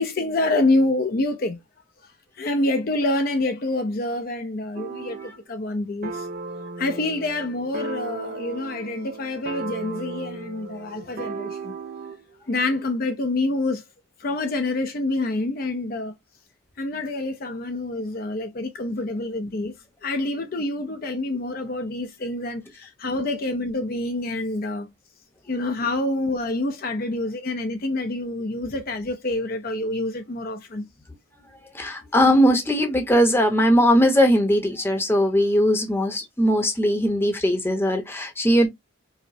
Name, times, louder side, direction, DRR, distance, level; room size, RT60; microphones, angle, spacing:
voice 1, 0.0-1.6 2.4-6.3 6.8-11.8 12.5-13.8 14.2-16.1 16.8-19.8 20.0-24.9 25.5-30.9, left 2 dB, 45° left, 0.5 m, -27 dB
sound 1, 4.7-5.4 6.0-12.2, right 3 dB, 40° right, 0.3 m, -35 dB
voice 2, 31.7-38.7, equal, 10° left, 0.7 m, -19 dB
4.7 x 2.0 x 2.6 m
head